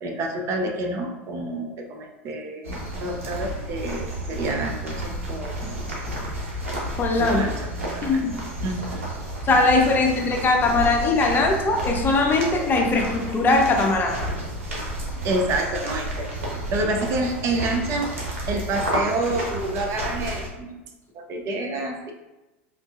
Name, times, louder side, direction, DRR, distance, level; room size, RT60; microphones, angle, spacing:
voice 1, 0.0-5.8 7.2-8.2 8.6-9.0 15.2-16.3 16.7-18.1 18.5-20.8 21.1-22.1, right 2 dB, 40° right, 3 dB, 0.6 m, -28 dB
sound 1, 2.6-20.5, right 1 dB, 85° right, 0.9 m, -31 dB
voice 2, 7.0-7.4 8.0-8.3 9.4-14.2, left 3 dB, 25° left, 2 dB, 0.6 m, -20 dB
3.6 x 2.6 x 2.4 m, 1.0 s
hypercardioid pair, 90°, 7 cm